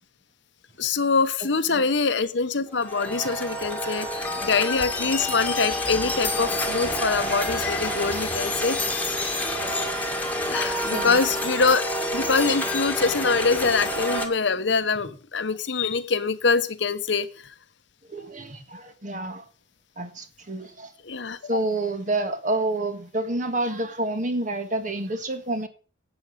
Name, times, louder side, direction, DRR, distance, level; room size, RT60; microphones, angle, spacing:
voice 1, 0.8-8.8 10.5-17.5 21.1-21.6, left 4 dB, 70° left, 12 dB, 1.0 m, -24 dB
sound 1, 2.8-14.3, left 1 dB, 10° left, 1.7 m, -28 dB
voice 2, 3.7-4.4 10.8-11.2 18.1-19.5 20.0-20.9 21.5-25.7, right 2 dB, 40° right, 8 dB, 1.7 m, -29 dB
11.5 x 8.2 x 6.5 m, 0.39 s
head